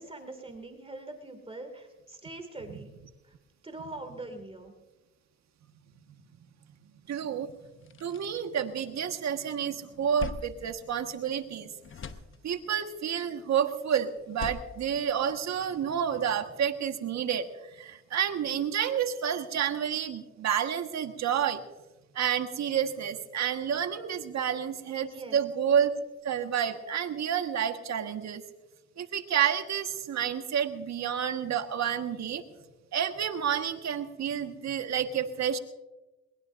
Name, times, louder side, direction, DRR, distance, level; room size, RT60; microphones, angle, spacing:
voice 1, 0.0-2.9 3.2-3.4 3.6-4.7 24.9-25.4, right 2 dB, 20° right, 5 dB, 2.4 m, -43 dB
voice 2, 7.1-7.5 8.0-11.7 12.4-21.6 22.1-25.9 26.2-28.4 29.0-32.4 32.9-35.6, right 8 dB, 65° right, 7 dB, 1.6 m, -29 dB
sound 1, 7.2-7.3 7.6-9.3 9.7-11.5 11.8-12.9 14.1-15.8, left 5 dB, 40° left, 0.9 m, -43 dB
22.0 x 20.5 x 2.6 m, 1.1 s
cardioid pair, 90°, 30 cm